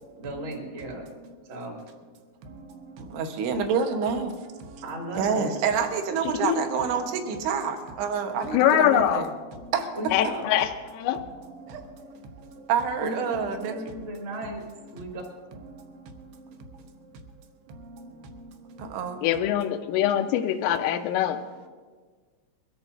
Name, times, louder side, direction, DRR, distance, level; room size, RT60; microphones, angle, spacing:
voice 1, 0.2-1.1 1.5-1.8 4.8-5.5 8.9-9.0 10.0-10.5 13.0-14.6 14.9-15.2, right 1 dB, 40° right, -1 dB, 2.0 m, -35 dB
voice 2, 3.1-4.3 5.2-9.2 10.2-10.3 12.7-13.7 18.9-19.2, right 6 dB, 70° right, 4 dB, 2.8 m, -27 dB
voice 3, 8.5-9.2 10.1-11.2 19.2-21.4, left 11 dB, 85° left, 3 dB, 3.0 m, -23 dB
22.5 x 14.0 x 2.6 m, 1.5 s
omnidirectional pair, 6.0 m